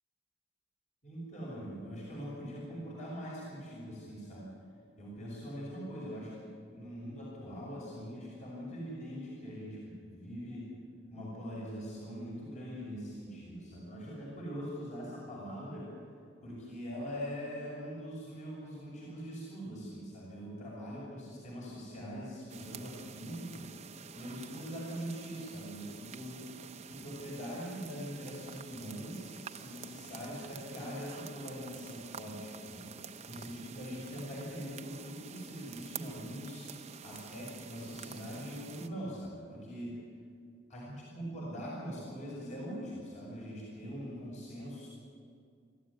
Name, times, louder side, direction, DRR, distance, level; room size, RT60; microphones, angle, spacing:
voice 1, 1.0-4.5 5.0-6.4 6.7-10.7 11.1-15.9 16.4-23.7 24.2-26.4 26.9-32.9 33.3-36.7 37.0-40.0 40.7-44.9, equal, 40° left, -4 dB, 6.2 m, -42 dB
sound 1, 22.5-38.9, right 6 dB, 35° right, 0.7 m, -48 dB
26.0 x 15.0 x 9.8 m, 2.3 s
head